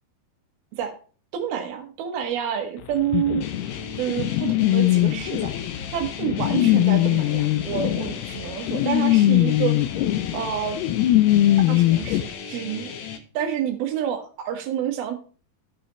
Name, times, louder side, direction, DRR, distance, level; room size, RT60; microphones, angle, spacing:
voice 1, 1.3-3.4 4.0-5.5 5.9-9.8 10.3-10.8 11.7-12.9 13.3-15.2, right 9 dB, 75° right, 3 dB, 3.2 m, -28 dB
sound 1, 3.1-12.2, left 14 dB, 90° left, 2.6 m, -21 dB
sound 2, 3.4-13.2, left 7 dB, 70° left, 1.7 m, -36 dB
16.0 x 5.7 x 3.1 m, 0.39 s
omnidirectional pair, 4.5 m